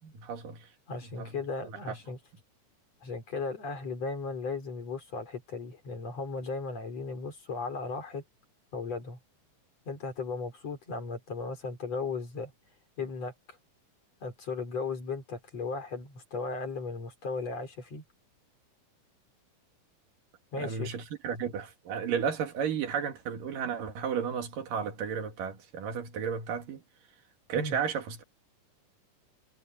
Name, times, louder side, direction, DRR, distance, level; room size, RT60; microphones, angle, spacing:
voice 1, 0.0-0.7 1.2-1.3 1.7-2.0 20.6-26.8 27.5-28.2, right 7 dB, 85° right, 3.8 m, -33 dB
voice 2, 0.9-2.2 3.0-8.2 8.7-9.2 9.9-12.5 13.0-13.6 14.2-18.0 20.5-20.9 27.5-27.8, left 4 dB, 50° left, 5.9 m, -36 dB
omnidirectional pair, 3.7 m